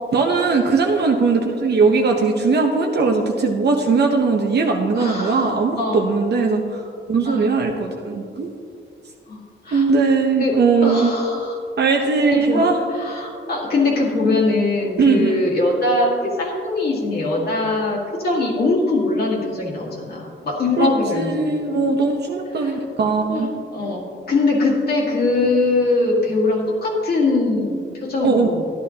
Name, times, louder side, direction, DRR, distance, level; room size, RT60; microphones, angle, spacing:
voice 1, 0.1-6.8 7.1-8.5 9.7-11.1 11.8-12.9 15.0-15.4 20.8-20.9 21.1-23.5 28.2-28.5, right 4 dB, 55° right, 1 dB, 0.8 m, -19 dB
voice 2, 5.0-5.5 5.8-6.1 7.2-7.5 9.3-9.9 10.4-11.6 12.3-12.6 12.9-21.6 22.6-22.8 23.3-28.7, left 2 dB, 50° left, -4 dB, 1.9 m, -22 dB
12.5 x 11.0 x 2.9 m, 2.4 s
wide cardioid pair, 165°, 20 cm